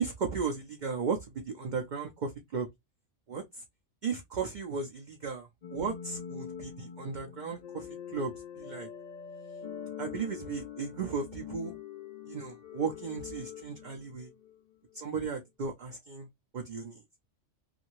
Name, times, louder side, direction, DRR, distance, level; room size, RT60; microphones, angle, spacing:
voice 1, 0.0-2.7 3.3-3.6 4.0-8.9 10.0-11.8 12.3-14.3 14.9-16.3 16.5-17.0, right 5 dB, 55° right, 0.5 m, -35 dB
sound 1, 5.6-14.6, left 8 dB, 85° left, 0.3 m, -44 dB
2.7 x 2.5 x 2.9 m
omnidirectional pair, 1.3 m